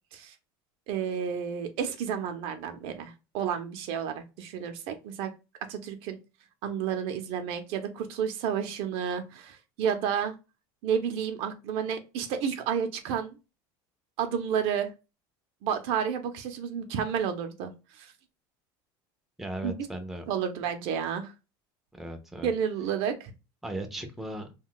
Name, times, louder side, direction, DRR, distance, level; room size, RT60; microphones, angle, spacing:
voice 1, 0.9-5.3 5.7-6.2 6.6-10.3 10.8-13.4 14.2-14.9 15.6-17.7 18.0-18.1 19.6-19.8 20.3-21.3 22.4-23.3, right 8 dB, 60° right, 7 dB, 0.5 m, -31 dB
voice 2, 19.4-20.2 21.9-22.5 23.6-24.5, right 1 dB, ahead, 4 dB, 0.4 m, -37 dB
2.4 x 2.2 x 3.7 m, 0.28 s
cardioid pair, 145°, 11 cm